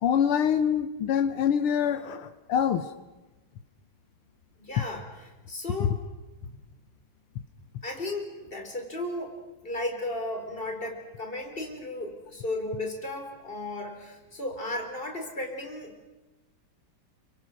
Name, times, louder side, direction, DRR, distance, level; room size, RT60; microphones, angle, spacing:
voice 1, 0.0-2.9, left 8 dB, 85° left, 10 dB, 1.9 m, -25 dB
voice 2, 4.6-6.0 6.4-6.5 7.8-9.4 9.6-16.0, left 1 dB, 25° left, 3 dB, 4.1 m, -35 dB
29.5 x 24.0 x 6.4 m, 1.1 s
omnidirectional pair, 2.4 m